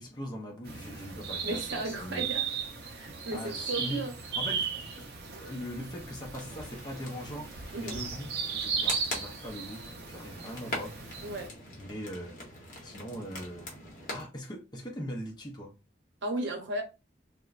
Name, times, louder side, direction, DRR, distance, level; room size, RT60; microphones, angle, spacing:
voice 1, 0.0-2.3 3.3-4.1 4.4-4.7 5.0-5.1 5.4-10.9 11.8-12.4 12.8-13.7 14.0-15.7, equal, 25° left, 0.5 m, -40 dB
Woodland Birds, 0.6-11.5, right 6 dB, 60° right, 0.5 m, -36 dB
voice 2, 1.4-2.5 2.9-4.1 7.7-8.0 11.2-11.5 16.2-16.8, right 2 dB, 90° right, 0.8 m, -35 dB
sound 1, 6.3-14.3, left 2 dB, 45° left, 0.9 m, -43 dB
2.9 x 2.0 x 2.3 m
head